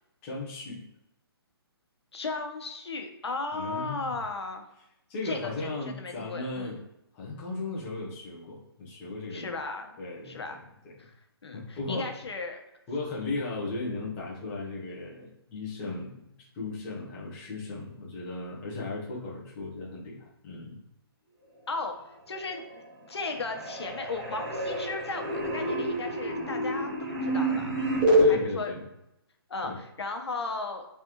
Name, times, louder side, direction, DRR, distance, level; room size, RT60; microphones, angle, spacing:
voice 1, 0.2-0.8 3.5-4.1 5.1-6.8 7.1-9.6 10.0-10.9 11.5-12.1 12.9-20.8 28.2-28.8 29.6-29.8, left 3 dB, 10° left, -6 dB, 0.6 m, -36 dB
voice 2, 2.1-4.7 5.2-6.7 9.3-10.0 10.2-10.6 11.0-11.1 11.4-12.6 21.7-21.9 22.3-22.8 23.1-27.7 28.3-28.7 29.5-30.9, left 3 dB, 85° left, 4 dB, 1.0 m, -36 dB
sound 1, 22.3-22.9 23.1-28.3, right 1 dB, 20° right, 1.0 m, -28 dB
3.7 x 3.3 x 2.9 m, 0.85 s
hypercardioid pair, 180°, 13 cm